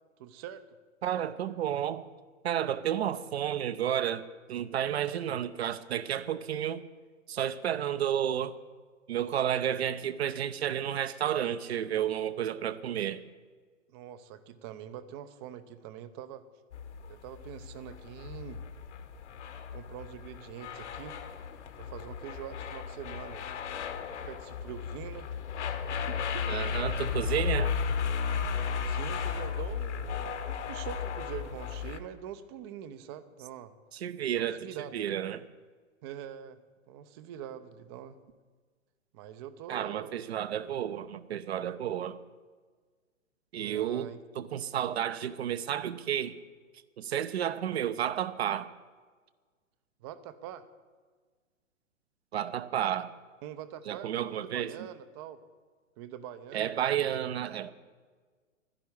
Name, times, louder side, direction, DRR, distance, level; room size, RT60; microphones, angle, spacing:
voice 1, 0.2-0.6 13.9-16.4 17.1-18.6 19.7-21.2 21.8-23.5 24.3-25.3 25.9-26.8 28.8-33.7 34.4-34.9 36.0-36.6 36.9-38.2 39.1-40.1 43.5-44.2 50.0-50.7 53.4-55.4 56.0-57.2, right 10 dB, 20° right, 0.5 m, -44 dB
voice 2, 1.0-2.0 2.4-4.2 4.5-6.8 7.3-8.5 9.1-13.2 26.5-27.7 34.0-35.4 39.7-42.2 43.5-46.4 47.0-48.7 52.3-53.1 53.9-54.7 56.5-57.7, right 10 dB, 55° right, 0.7 m, -31 dB
sound 1, 16.7-32.0, left 6 dB, 60° left, 1.5 m, -35 dB
12.0 x 10.5 x 8.4 m
figure-of-eight pair, 125°, 39 cm